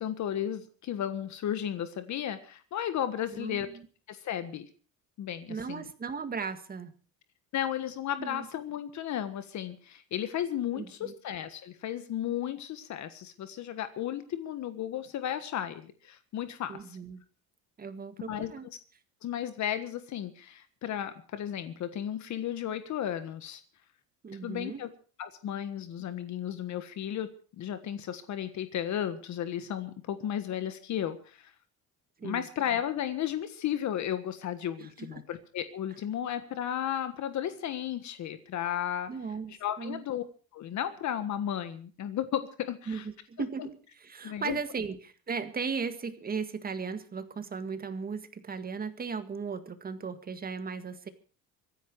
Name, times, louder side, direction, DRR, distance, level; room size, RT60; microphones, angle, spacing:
voice 1, 0.0-3.7 4.1-4.7 5.2-5.8 7.5-17.0 18.3-18.5 19.2-23.6 24.4-24.9 25.2-31.5 32.2-39.1 39.5-40.2 40.5-43.0 43.4-43.5 44.2-44.6, left 10 dB, 50° left, 10 dB, 1.5 m, -34 dB
voice 2, 3.3-3.9 5.5-6.9 8.2-8.5 10.7-11.2 16.7-17.2 17.8-18.7 24.2-24.8 32.2-32.5 34.8-35.2 39.1-40.0 42.9-51.1, right 5 dB, 25° right, 10 dB, 1.8 m, -37 dB
25.0 x 10.5 x 4.7 m, 0.39 s
cardioid pair, 135°, 35 cm